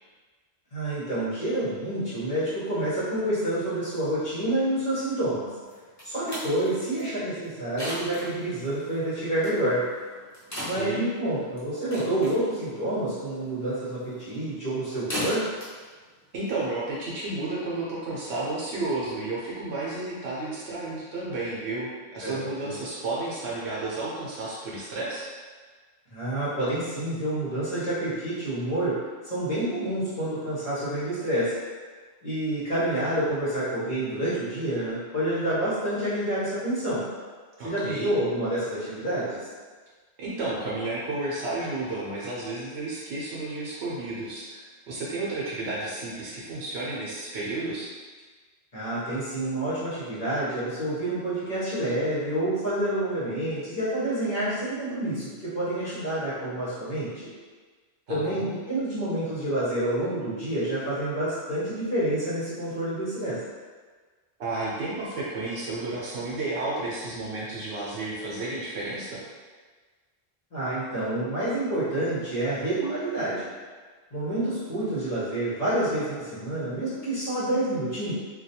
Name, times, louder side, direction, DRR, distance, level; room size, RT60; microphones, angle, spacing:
voice 1, 0.7-5.5 6.0-9.9 10.6-15.5 22.2-22.8 26.1-29.0 29.2-31.5 32.2-37.1 37.6-39.5 48.7-57.3 58.1-63.4 70.5-73.5 74.1-78.1, right 1 dB, 50° left, -12 dB, 0.9 m, -28 dB
sound 1, 5.7-17.1, equal, 20° left, 0.6 m, -39 dB
voice 2, 16.3-25.3 37.6-38.1 40.2-47.9 58.1-58.6 64.4-69.2, right 2 dB, 80° right, -6 dB, 0.8 m, -32 dB
2.3 x 2.2 x 2.7 m, 1.5 s
omnidirectional pair, 1.1 m